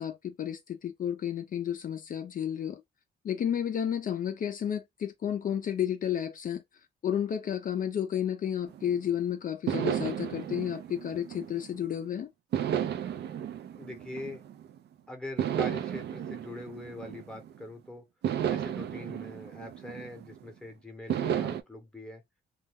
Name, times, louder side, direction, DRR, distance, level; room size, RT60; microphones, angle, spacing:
voice 1, 0.0-2.8 3.2-6.6 7.0-12.3, left 9 dB, 45° left, 0.4 m, -32 dB
sound 1, 8.7-9.1 9.7-11.9 12.5-14.8 15.4-17.6 18.2-20.5 21.1-21.6, right 9 dB, 60° right, 0.4 m, -33 dB
voice 2, 13.8-14.4 15.1-18.1 18.5-22.2, left 2 dB, 5° left, 0.8 m, -43 dB
2.3 x 2.1 x 3.3 m
cardioid pair, 90°, 20 cm